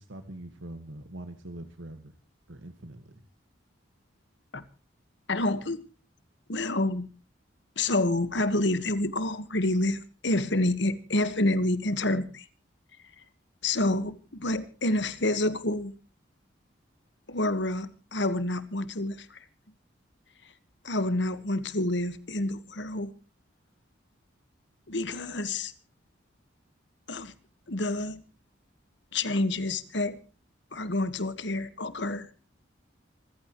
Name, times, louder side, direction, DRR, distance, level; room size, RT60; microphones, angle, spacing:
voice 1, 0.0-2.1 2.5-3.2, right 1 dB, 90° right, 1.8 m, -43 dB
voice 2, 5.3-5.8 6.5-7.1 7.7-12.4 13.6-15.9 17.3-19.4 20.8-23.1 24.9-25.7 27.1-27.3 27.7-28.2 29.1-30.2 30.7-32.3, left 2 dB, 70° left, 1.6 m, -28 dB
26.5 x 15.0 x 3.1 m
head